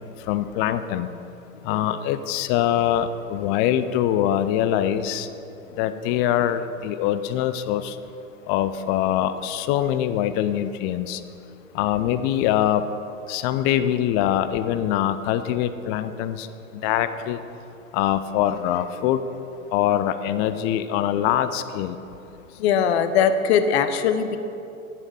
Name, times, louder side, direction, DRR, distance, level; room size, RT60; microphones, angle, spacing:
voice 1, 0.3-1.1 1.6-5.3 5.7-8.0 8.5-11.2 11.7-12.9 13.3-16.5 16.7-17.4 17.9-19.2 19.7-22.0, left 11 dB, 25° left, 12 dB, 0.4 m, -23 dB
voice 2, 22.5-24.4, left 7 dB, 50° left, 10 dB, 0.9 m, -21 dB
10.5 x 8.5 x 4.8 m, 2.7 s
figure-of-eight pair, 95°, 41 cm